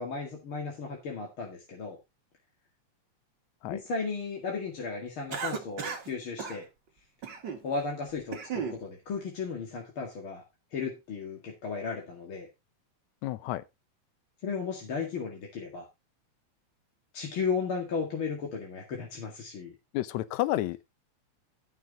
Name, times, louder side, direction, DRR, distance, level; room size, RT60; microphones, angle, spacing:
voice 1, 0.0-2.0 3.6-6.7 7.6-10.4 10.7-12.5 14.4-15.9 17.1-19.7, left 5 dB, 45° left, 2.6 m, -35 dB
Cough, 5.3-6.1 6.4-6.6 7.2-7.6 8.1-8.8, right 6 dB, 45° right, 1.8 m, -35 dB
voice 2, 13.2-13.6 19.9-20.9, left 15 dB, 80° left, 2.0 m, -31 dB
13.5 x 6.6 x 3.9 m
omnidirectional pair, 3.4 m